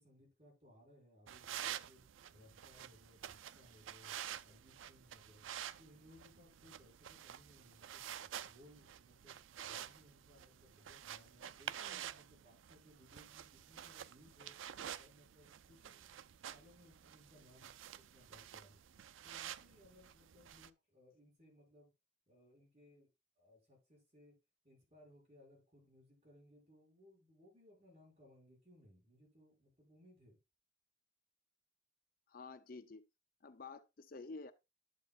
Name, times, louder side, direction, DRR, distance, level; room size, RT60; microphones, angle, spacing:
voice 1, 0.0-2.0 2.3-4.2 4.4-5.5 5.8-14.5 14.9-18.8 19.2-21.9 22.3-23.1 23.4-24.4 24.6-30.4, left 1 dB, 35° right, 6.4 m, -64 dB
sound 1, 1.3-20.7, right 10 dB, 80° right, 0.4 m, -49 dB
voice 2, 32.3-33.0 33.4-34.5, left 3 dB, 45° left, 0.5 m, -50 dB
11.0 x 7.5 x 2.4 m
head